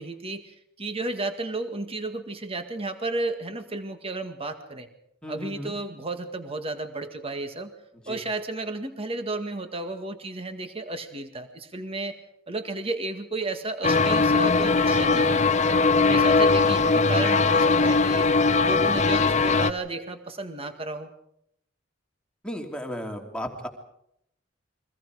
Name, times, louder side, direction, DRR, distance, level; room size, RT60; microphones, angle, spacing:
voice 1, 0.0-4.9 5.3-7.7 8.1-12.1 12.5-15.5 16.0-18.3 18.6-21.1, right 2 dB, 30° right, 7 dB, 2.0 m, -33 dB
voice 2, 5.2-5.7 8.1-8.2 15.8-16.2 22.4-23.7, equal, 5° left, 2 dB, 3.0 m, -35 dB
sound 1, 13.8-19.7, left 4 dB, 40° left, 0.8 m, -20 dB
30.0 x 23.5 x 4.9 m, 0.73 s
head